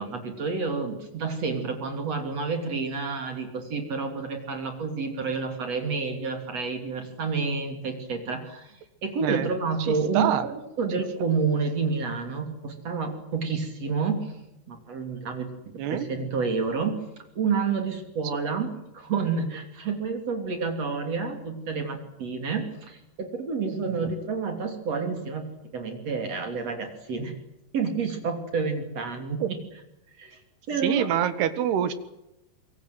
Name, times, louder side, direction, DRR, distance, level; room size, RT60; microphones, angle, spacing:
voice 1, 0.0-14.4 14.7-15.5 15.9-17.1 17.4-27.4 27.7-29.6 30.2-30.4 30.7-31.1, right 5 dB, 40° right, 5 dB, 3.6 m, -29 dB
voice 2, 10.1-10.4 15.8-16.1 29.4-29.5 30.8-31.9, right 10 dB, 70° right, 12 dB, 3.4 m, -25 dB
25.5 x 23.0 x 8.0 m, 0.88 s
omnidirectional pair, 5.1 m